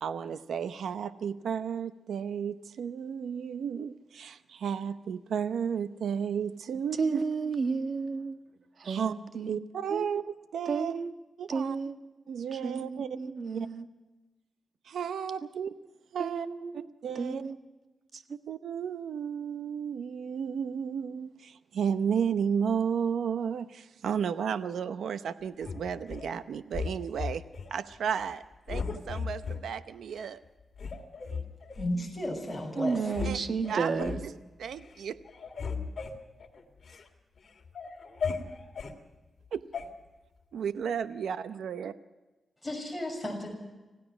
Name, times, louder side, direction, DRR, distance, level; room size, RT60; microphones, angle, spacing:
voice 1, 0.0-7.2 8.8-9.1 9.5-10.9 11.4-11.8 12.3-13.1 13.5-13.7 14.9-15.8 16.1-16.5 16.7-17.4 18.5-27.4 27.7-30.4 33.2-33.4 33.7-33.9 34.6-35.2 39.5-39.6 40.5-41.9, right 7 dB, 90° right, 12 dB, 0.7 m, -33 dB
voice 2, 7.0-8.4 8.8-9.6 9.9-10.2 10.7-11.1 11.5-12.1 12.5-13.9 16.2-16.9 17.1-17.6 18.1-18.4 32.7-34.2, right 5 dB, 60° right, 7 dB, 1.5 m, -32 dB
sound 1, 25.6-26.3 26.7-27.7 28.1-28.3 28.7-29.6 30.2-30.3 30.8-31.9 32.5-32.6 32.9-33.4 33.6-34.3 34.7-35.0 35.2-37.1 37.4-39.0 39.7-39.9, left 5 dB, 55° left, 2.6 m, -36 dB
voice 3, 31.8-33.1 42.6-43.5, left 1 dB, 5° left, -1 dB, 7.0 m, -34 dB
26.5 x 16.5 x 6.1 m, 1.2 s
cardioid pair, 85°, 0 cm